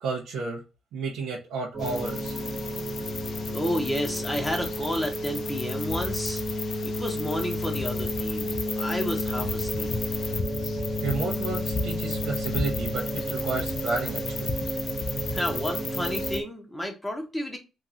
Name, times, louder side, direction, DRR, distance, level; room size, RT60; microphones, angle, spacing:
voice 1, 0.0-0.6 0.9-2.3 11.0-14.5, right 4 dB, 90° right, 0.7 m, -31 dB
sound 1, 1.7-16.4, left 1 dB, 45° right, 1.1 m, -32 dB
sound 2, 1.8-16.4, left 4 dB, 50° left, 0.5 m, -35 dB
voice 2, 3.5-9.9 15.3-17.6, equal, 5° left, 0.7 m, -31 dB
3.0 x 2.5 x 2.4 m
cardioid pair, 90°, 0 cm